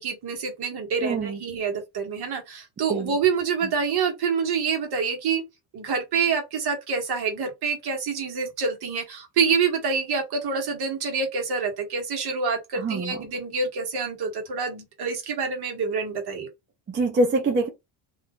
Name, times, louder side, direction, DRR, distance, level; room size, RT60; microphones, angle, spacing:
voice 1, 0.0-5.4 5.7-16.5, right 5 dB, 50° right, 1.3 m, -27 dB
voice 2, 1.0-1.4 2.9-3.1 12.7-13.2 16.9-17.7, right 2 dB, 25° right, 0.5 m, -24 dB
2.7 x 2.4 x 3.6 m
cardioid pair, 110°, 50 cm